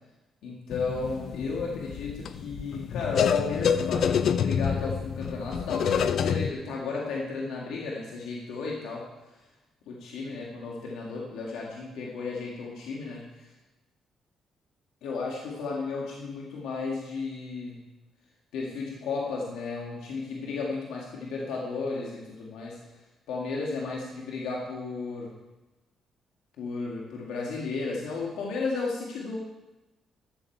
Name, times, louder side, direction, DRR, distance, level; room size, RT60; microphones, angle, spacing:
voice 1, 0.4-9.0 9.9-13.5 15.0-17.8 18.5-22.8 23.3-25.3 26.6-29.4, left 4 dB, 85° left, -3 dB, 1.7 m, -34 dB
sound 1, 0.7-6.5, left 7 dB, 65° left, 0.5 m, -28 dB
12.5 x 7.1 x 4.5 m, 1.1 s
cardioid pair, 90°, 0 cm